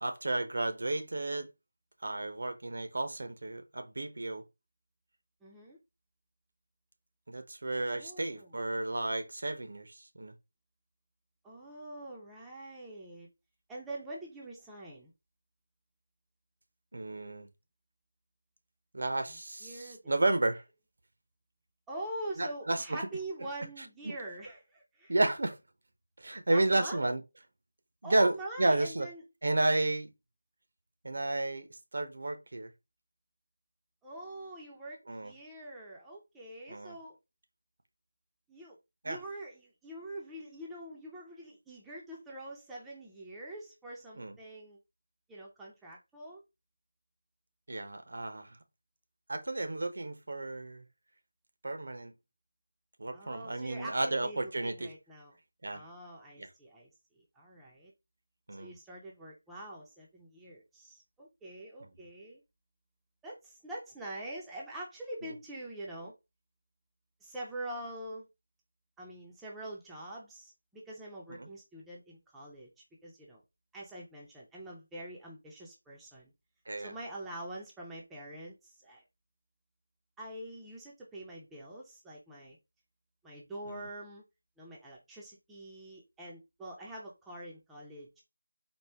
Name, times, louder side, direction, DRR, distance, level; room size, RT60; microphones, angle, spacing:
voice 1, 0.0-1.5 2.0-4.4 7.3-10.3 16.9-17.5 18.9-20.6 22.4-23.0 24.0-24.2 25.1-25.6 26.2-27.2 28.0-29.1 29.4-30.1 31.0-32.7 35.1-35.3 36.7-37.0 39.0-39.2 44.2-44.3 47.7-48.6 49.3-50.8 51.6-52.1 53.0-54.9 55.6-55.8 56.4-56.5 58.5-58.7 61.8-61.9 65.2-65.3 71.3-71.5 76.7-76.9 83.7-83.8, right 2 dB, 60° right, 0.8 m, -32 dB
voice 2, 5.4-5.8 7.9-8.5 11.4-13.3 13.7-15.1 19.6-20.0 21.9-25.1 26.5-27.0 28.0-29.2 34.0-37.2 38.5-38.8 39.0-44.8 45.3-46.4 53.1-55.4 55.7-56.9 57.1-57.9 58.6-62.4 63.2-66.1 67.2-68.3 69.0-72.7 73.0-73.4 73.7-76.3 76.8-79.0 80.2-82.6 83.2-84.2 84.6-88.2, right 1 dB, 5° right, 0.5 m, -44 dB
4.3 x 2.2 x 3.3 m
figure-of-eight pair, 170°, 0 cm